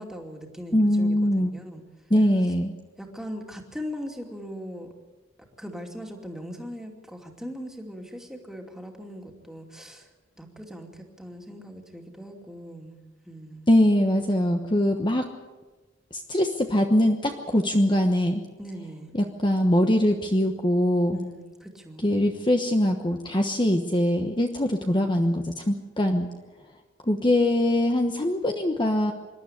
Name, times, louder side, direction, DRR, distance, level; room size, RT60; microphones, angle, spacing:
voice 1, 0.0-1.8 3.0-4.9 5.6-10.1 10.4-13.0 13.2-13.7 18.6-19.1 21.1-22.1, equal, ahead, 2 dB, 2.6 m, -39 dB
voice 2, 0.7-1.5 2.1-2.7 13.7-15.3 16.1-18.4 19.1-21.2 22.0-26.3 27.1-29.1, left 1 dB, 25° left, 4 dB, 1.2 m, -22 dB
26.5 x 12.0 x 9.9 m, 1.3 s
head